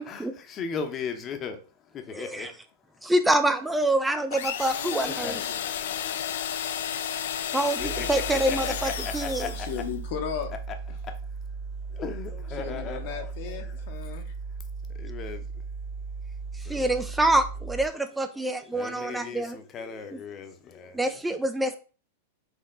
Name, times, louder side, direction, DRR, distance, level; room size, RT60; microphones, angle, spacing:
voice 1, 0.0-1.6 2.1-2.5 5.2-5.4 5.9-6.2 7.0-7.5 7.8-9.7 11.0-11.1 11.9-13.3 13.6-13.8 15.0-15.4 16.7-16.9 18.3-21.2, left 6 dB, 30° left, 0.8 m, -37 dB
voice 2, 2.1-2.5 3.0-5.4 7.5-9.5 16.7-19.6 20.1-20.2 20.9-21.8, right 1 dB, 5° right, 0.3 m, -26 dB
sound 1, 4.3-9.9, left 9 dB, 75° left, 0.4 m, -32 dB
voice 3, 5.3-6.2 9.5-10.5 12.5-14.3, left 8 dB, 60° left, 0.8 m, -36 dB
sound 2, 7.8-17.9, right 4 dB, 40° right, 0.6 m, -37 dB
4.5 x 2.9 x 3.7 m
hypercardioid pair, 130°, 0 cm